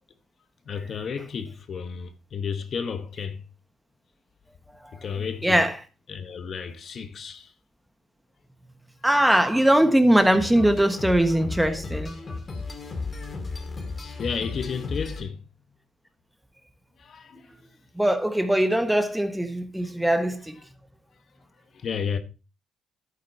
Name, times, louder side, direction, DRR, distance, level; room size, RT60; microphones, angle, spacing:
voice 1, 0.6-3.4 4.9-5.6 6.1-7.5 11.3-11.4 14.2-15.5 17.0-17.5 19.8-19.9 21.7-22.2, left 6 dB, 55° left, 1.1 m, -32 dB
voice 2, 9.0-12.1 18.0-20.5, right 1 dB, 5° right, 1.4 m, -21 dB
sound 1, 10.1-15.2, left 3 dB, 35° left, 2.6 m, -34 dB
11.5 x 8.9 x 2.8 m
cardioid pair, 90°, 0 cm